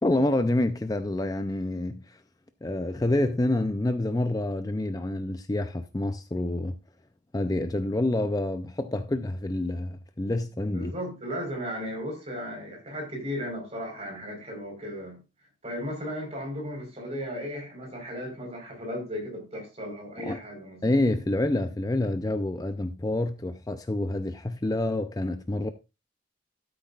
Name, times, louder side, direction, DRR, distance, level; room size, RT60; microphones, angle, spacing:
voice 1, 0.0-2.2 2.6-6.8 7.3-10.9 20.2-20.4 20.8-25.7, left 1 dB, 20° left, 0.4 m, -27 dB
voice 2, 10.7-15.2 15.6-20.8, equal, 35° right, 4.3 m, -35 dB
13.0 x 8.0 x 2.4 m
head